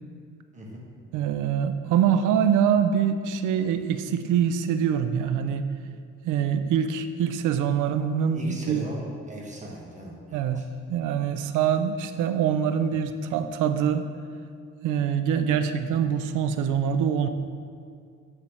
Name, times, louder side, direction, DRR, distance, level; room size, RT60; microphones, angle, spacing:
voice 1, 1.1-5.7 6.2-8.9 10.3-10.6 10.9-14.1 14.8-17.3, right 8 dB, 85° right, 9 dB, 0.5 m, -24 dB
voice 2, 8.3-10.4, equal, 25° right, -2 dB, 1.4 m, -38 dB
9.6 x 4.1 x 3.2 m, 2.4 s
cardioid pair, 90°, 30 cm